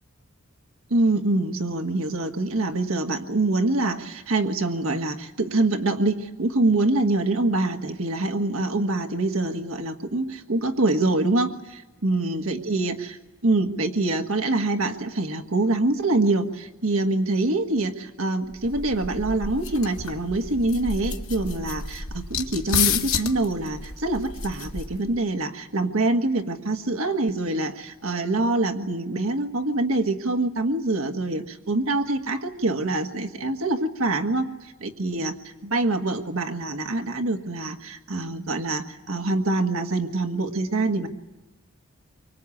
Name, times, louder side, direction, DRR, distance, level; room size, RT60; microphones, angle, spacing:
voice 1, 0.9-41.1, right 2 dB, 80° right, 5 dB, 1.6 m, -25 dB
sound 1, 18.5-25.2, left 6 dB, 85° left, 1.8 m, -30 dB
25.5 x 24.5 x 8.5 m, 1.1 s
head